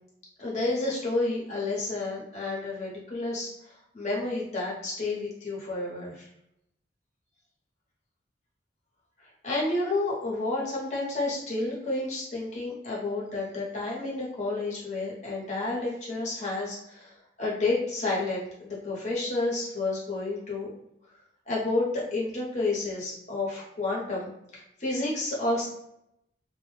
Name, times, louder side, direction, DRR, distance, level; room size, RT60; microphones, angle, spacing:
voice 1, 0.4-6.3 9.4-20.7 21.5-25.7, left 2 dB, 40° left, -5 dB, 1.0 m, -30 dB
2.4 x 2.2 x 3.2 m, 0.80 s
head